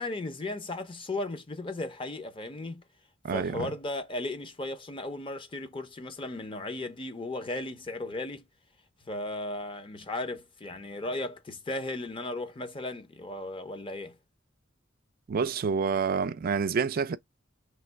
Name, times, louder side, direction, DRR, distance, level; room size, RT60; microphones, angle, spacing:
voice 1, 0.0-2.8 3.3-8.5 9.1-14.2, left 2 dB, 25° left, 0.6 m, -36 dB
voice 2, 3.2-3.7 15.3-17.2, right 5 dB, 45° right, 0.4 m, -28 dB
3.2 x 2.9 x 4.5 m
head